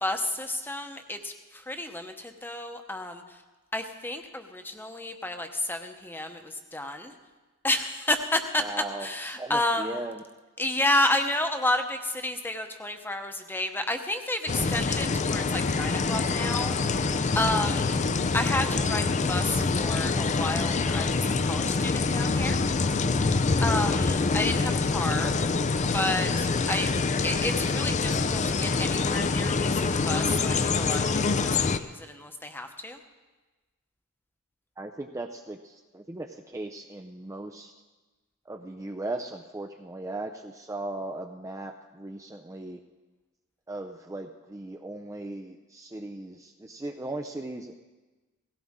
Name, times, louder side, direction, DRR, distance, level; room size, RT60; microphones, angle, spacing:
voice 1, 0.0-3.4 3.7-7.1 7.6-8.6 9.0-10.0 10.6-18.0 18.3-22.6 23.6-25.3 25.9-26.9 27.2-31.0 31.4-33.0, left 1 dB, 10° left, 6 dB, 0.9 m, -31 dB
voice 2, 8.6-10.2 34.8-37.7 38.5-42.8 43.7-47.7, right 2 dB, 15° right, 4 dB, 0.5 m, -38 dB
sound 1, 14.5-31.8, left 4 dB, 35° left, 0.5 m, -26 dB
17.5 x 16.5 x 3.7 m, 1.2 s
head